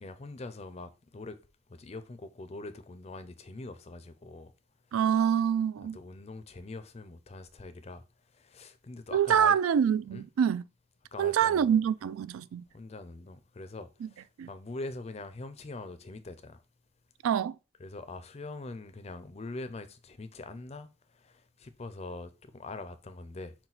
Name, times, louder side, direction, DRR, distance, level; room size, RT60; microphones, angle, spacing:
voice 1, 0.0-1.4 1.7-4.5 5.8-8.0 8.3-9.6 10.1-10.3 11.1-11.7 12.7-16.6 17.8-23.5, left 2 dB, 30° left, 0.4 m, -43 dB
voice 2, 4.9-6.0 9.1-10.6 11.2-12.6 14.4-14.5 17.2-17.5, right 8 dB, 85° right, 0.3 m, -26 dB
5.7 x 2.2 x 3.9 m
head